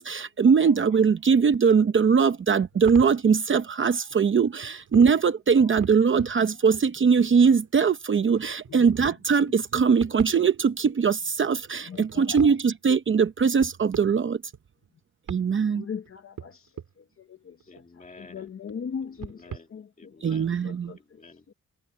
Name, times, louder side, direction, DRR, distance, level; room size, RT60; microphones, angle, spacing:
voice 1, 0.0-14.4 15.3-15.9 20.2-20.9, right 6 dB, 40° right, 0.7 m, -21 dB
sound 1, 2.6-3.2 4.1-4.2 4.6-5.2 5.5-6.4 6.7-7.7 8.3-9.2 9.5-10.8 11.1-11.2 11.4-12.6 13.2-13.3 13.6-14.2 14.5-14.8 15.3-15.4 16.1-16.9 17.6-18.7 19.0-19.6, right 8 dB, 80° right, 4.2 m, -39 dB
voice 2, 15.8-16.5 18.2-19.3 19.7-19.8, left 6 dB, 45° left, 0.8 m, -36 dB
voice 3, 17.7-18.5 19.0-19.7 20.0-20.4 21.1-21.5, left 3 dB, 25° left, 2.3 m, -50 dB
wide cardioid pair, 180°, 31 cm